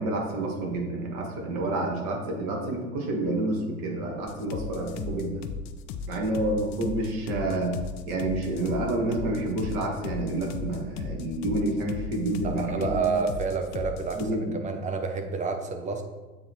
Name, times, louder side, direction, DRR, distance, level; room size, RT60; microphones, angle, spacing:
voice 1, 0.0-5.4 6.1-7.7 8.1-13.0 14.1-14.6, right 2 dB, 50° right, 0 dB, 1.5 m, -29 dB
sound 1, 4.3-14.2, left 6 dB, 35° left, 0.5 m, -36 dB
voice 2, 12.4-14.2 14.6-16.0, right 4 dB, 20° right, 5 dB, 0.5 m, -29 dB
7.5 x 2.9 x 4.5 m, 1.2 s
figure-of-eight pair, 75°, 41 cm